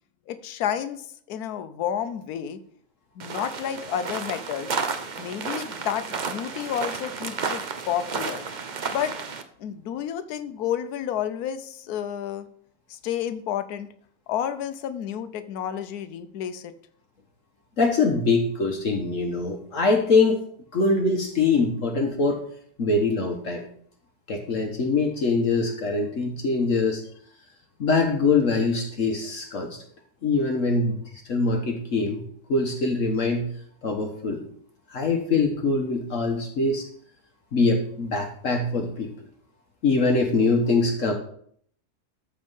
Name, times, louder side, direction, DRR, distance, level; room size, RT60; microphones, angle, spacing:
voice 1, 0.3-2.6 3.2-4.8 5.2-8.5 8.9-9.1 9.6-12.5 12.9-13.9 14.3-16.7, left 9 dB, 80° left, 11 dB, 1.2 m, -30 dB
sound 1, 3.2-9.4, right 5 dB, 40° right, 0.7 m, -32 dB
voice 2, 17.8-20.4 20.7-22.4 22.8-23.6 24.3-27.0 27.8-29.8 30.2-32.2 32.5-33.5 33.8-34.4 34.9-36.9 37.5-39.1 39.8-41.1, left 3 dB, 60° left, 3 dB, 1.4 m, -23 dB
13.5 x 4.5 x 5.4 m, 0.63 s
omnidirectional pair, 1.6 m